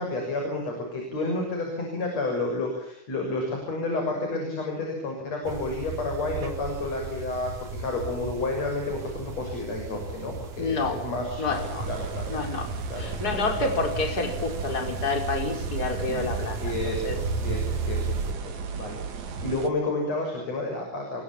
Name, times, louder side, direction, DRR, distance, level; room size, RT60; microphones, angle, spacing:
voice 1, 0.0-12.3 12.9-13.7 16.0-16.2 16.6-21.2, left 2 dB, 55° left, 2 dB, 7.6 m, -31 dB
sound 1, 5.4-18.3, right 4 dB, 85° right, 4.1 m, -35 dB
voice 2, 10.6-11.0 11.4-11.8 12.3-17.1, left 3 dB, 30° left, 3 dB, 5.0 m, -29 dB
sound 2, 11.5-19.7, right 5 dB, 65° right, 3.4 m, -36 dB
28.0 x 23.0 x 7.4 m, 0.74 s
omnidirectional pair, 3.5 m